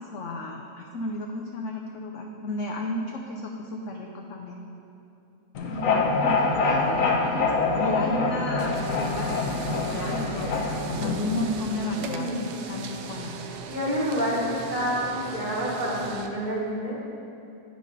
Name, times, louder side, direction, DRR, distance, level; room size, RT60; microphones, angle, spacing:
voice 1, 0.0-4.6 6.2-7.5 7.7-12.4 12.7-13.4, left 2 dB, 75° left, 1 dB, 0.7 m, -33 dB
sound 1, 5.5-11.6, left 3 dB, 60° left, 1.0 m, -25 dB
voice 2, 5.6-6.0 12.0-12.4 13.7-16.9, equal, 30° right, -5 dB, 1.3 m, -28 dB
sound 2, 8.6-16.3, right 5 dB, 70° right, 1.1 m, -39 dB
9.7 x 4.9 x 5.3 m, 2.8 s
omnidirectional pair, 2.0 m